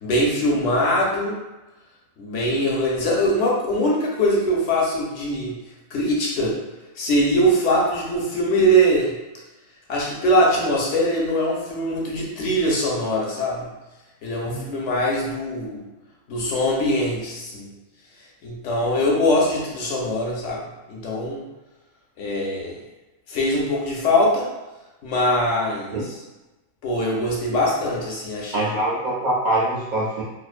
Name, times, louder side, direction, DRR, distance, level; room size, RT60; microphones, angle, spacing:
voice 1, 0.0-1.4 2.2-5.6 5.9-6.6 7.0-9.1 9.9-13.7 14.2-15.9 16.3-17.7 18.4-20.6 20.9-21.4 22.2-22.8 23.3-24.5 25.0-26.2 26.8-28.7, equal, 70° left, -2 dB, 0.8 m, -22 dB
voice 2, 28.5-30.2, right 1 dB, 60° right, -8 dB, 0.5 m, -24 dB
2.5 x 2.1 x 2.3 m, 1.1 s
omnidirectional pair, 1.4 m